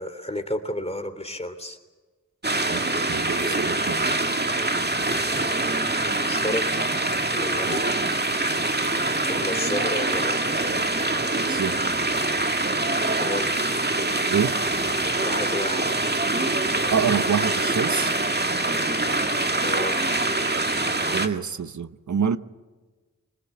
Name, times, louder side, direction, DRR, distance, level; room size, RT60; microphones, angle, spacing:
voice 1, 0.0-1.8 6.3-6.7 7.3-8.0 9.3-10.4 13.2-13.5 15.2-15.9 19.6-20.0, left 1 dB, 20° left, 8 dB, 3.1 m, -31 dB
sound 1, 2.4-21.3, right 2 dB, 35° right, 2.0 m, -24 dB
voice 2, 2.7-4.1 7.7-7.8 11.5-11.8 14.3-14.5 16.9-18.1 21.0-22.4, right 7 dB, 80° right, 13 dB, 1.0 m, -27 dB
26.0 x 19.5 x 8.5 m, 1.3 s
wide cardioid pair, 45°, 29 cm